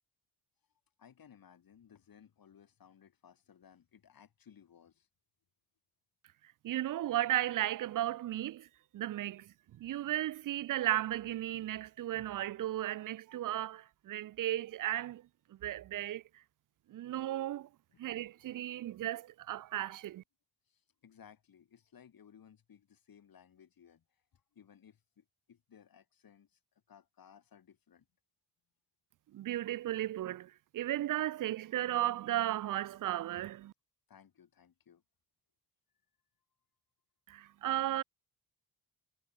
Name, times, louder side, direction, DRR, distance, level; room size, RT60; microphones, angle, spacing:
voice 1, 1.0-5.1 17.9-18.1 18.4-18.7 20.7-24.0 24.3-26.6 26.9-28.1 34.1-35.0, left 8 dB, 65° left, 7.2 m, -60 dB
voice 2, 6.6-8.7 8.9-15.2 15.6-16.2 16.9-17.7 18.0-20.2 29.3-33.7 37.3-38.0, right 13 dB, 55° right, 0.5 m, -35 dB
cardioid pair, 70°, 38 cm